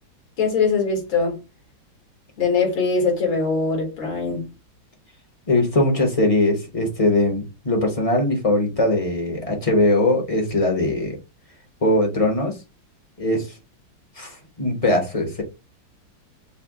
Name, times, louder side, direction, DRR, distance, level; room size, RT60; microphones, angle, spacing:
voice 1, 0.4-1.4 2.4-4.5, left 4 dB, 80° left, 2.4 m, -22 dB
voice 2, 5.5-11.2 11.8-12.6 13.2-13.5 14.2-15.4, left 1 dB, 30° left, 0.6 m, -21 dB
5.6 x 2.1 x 3.6 m
omnidirectional pair, 2.1 m